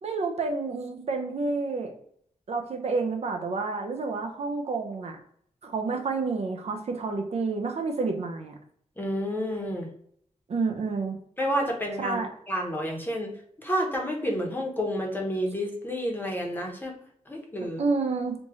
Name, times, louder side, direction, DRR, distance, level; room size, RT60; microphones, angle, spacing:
voice 1, 0.0-1.9 2.5-5.2 5.6-8.5 10.5-11.2 12.0-12.3 17.8-18.4, right 4 dB, 55° right, 3 dB, 0.6 m, -29 dB
voice 2, 9.0-9.9 11.4-12.2 12.5-13.3 13.6-16.9 17.3-17.8, equal, 15° left, 0 dB, 0.8 m, -29 dB
3.4 x 2.7 x 2.9 m, 0.65 s
wide cardioid pair, 150°, 13 cm